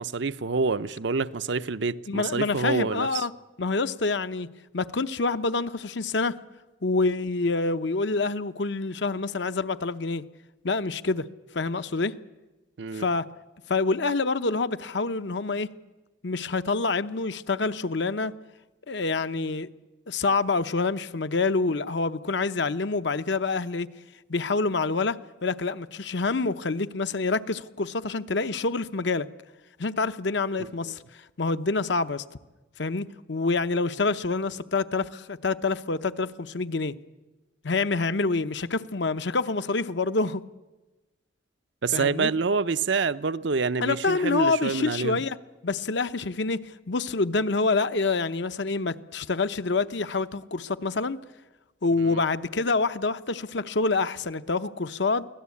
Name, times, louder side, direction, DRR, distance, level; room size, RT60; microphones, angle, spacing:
voice 1, 0.0-3.3 12.8-13.1 30.8-30.9 41.8-45.2 52.0-52.2, right 4 dB, 70° right, 0.6 m, -27 dB
voice 2, 2.1-3.3 3.6-4.5 4.7-6.4 6.8-10.2 10.6-11.3 11.5-12.1 12.9-13.3 13.7-15.7 16.2-18.3 18.9-19.7 20.1-23.9 24.3-29.3 29.8-32.2 32.8-36.9 37.6-40.4 41.9-42.3 43.8-45.4 45.6-51.2 51.8-55.3, left 3 dB, 65° left, 0.8 m, -27 dB
24.0 x 17.0 x 8.5 m
head